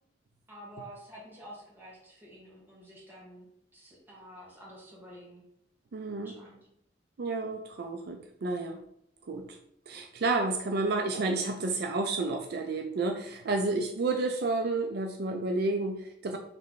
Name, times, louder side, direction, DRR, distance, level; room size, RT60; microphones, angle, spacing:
voice 1, 0.5-3.4 3.7-5.4 6.1-6.6, equal, 10° right, -6 dB, 1.5 m, -49 dB
voice 2, 5.9-6.3 7.2-8.8 9.3-9.5 9.9-16.4, right 3 dB, 60° right, 4 dB, 0.4 m, -30 dB
3.4 x 3.1 x 3.9 m, 0.72 s
head